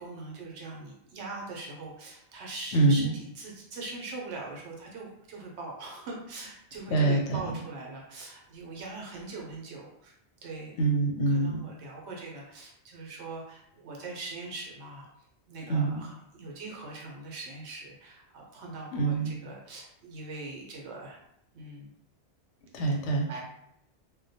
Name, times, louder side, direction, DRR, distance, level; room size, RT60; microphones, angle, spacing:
voice 1, 0.0-10.1 10.4-10.8 11.3-15.1 15.5-21.2 21.5-21.9 23.3-23.4, right 3 dB, 75° right, -1 dB, 0.9 m, -42 dB
voice 2, 2.7-3.1 6.9-7.4 10.8-11.6 15.7-16.0 18.9-19.4 22.7-23.3, right 3 dB, 85° left, 0 dB, 0.9 m, -25 dB
2.2 x 2.1 x 2.6 m, 0.77 s
omnidirectional pair, 1.2 m